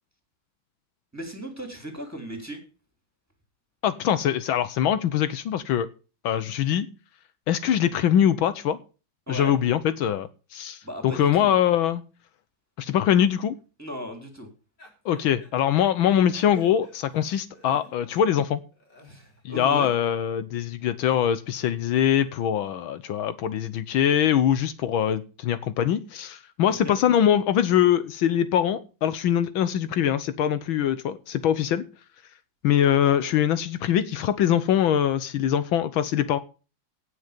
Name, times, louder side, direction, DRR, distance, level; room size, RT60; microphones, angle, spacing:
voice 1, 1.1-2.6 9.3-9.5 10.8-11.5 13.8-14.5 19.1-19.9 26.6-26.9, equal, 5° right, 3.3 m, -36 dB
voice 2, 3.8-5.9 6.2-6.9 7.5-8.8 9.3-12.0 12.8-13.6 15.0-18.6 19.4-31.8 32.6-36.4, left 10 dB, 75° left, 1.6 m, -23 dB
sound 1, 14.8-15.5 16.0-18.2 18.7-19.4, left 1 dB, 55° left, 4.7 m, -49 dB
17.5 x 6.7 x 5.1 m
omnidirectional pair, 2.2 m